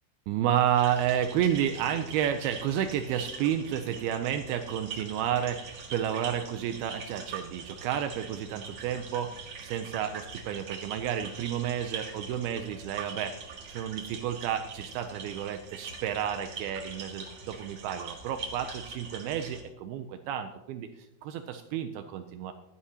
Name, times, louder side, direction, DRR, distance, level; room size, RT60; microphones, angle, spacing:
voice 1, 0.3-22.5, right 10 dB, 90° right, 7 dB, 2.2 m, -31 dB
sound 1, 0.7-19.6, right 5 dB, 60° right, 1.6 m, -43 dB
15.5 x 11.5 x 2.8 m, 0.97 s
omnidirectional pair, 5.0 m